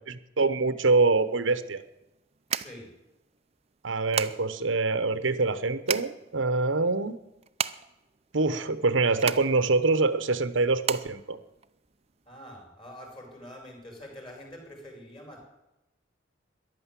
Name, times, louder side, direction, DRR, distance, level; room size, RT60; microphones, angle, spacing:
voice 1, 0.4-1.8 3.8-7.2 8.3-11.4, right 3 dB, 85° right, 12 dB, 1.0 m, -25 dB
sound 1, 1.1-12.2, right 8 dB, 35° right, 0.5 m, -36 dB
voice 2, 2.6-2.9 12.2-15.5, equal, 25° left, 1 dB, 5.0 m, -45 dB
14.0 x 11.0 x 7.5 m, 0.94 s
head